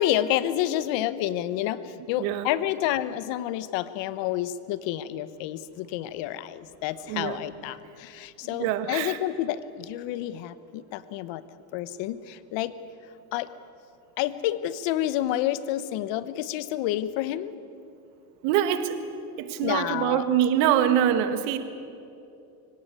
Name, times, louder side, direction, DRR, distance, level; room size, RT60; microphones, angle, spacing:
voice 1, 0.0-11.4 11.7-12.8 13.3-13.5 14.2-17.5 19.6-20.2, left 13 dB, 70° left, 15 dB, 1.2 m, -29 dB
voice 2, 2.2-2.5 7.0-7.4 8.4-9.2 18.4-19.0 19.4-21.6, right 10 dB, 80° right, 9 dB, 1.9 m, -24 dB
25.0 x 17.0 x 8.4 m, 2.7 s
supercardioid pair, 95°, 46 cm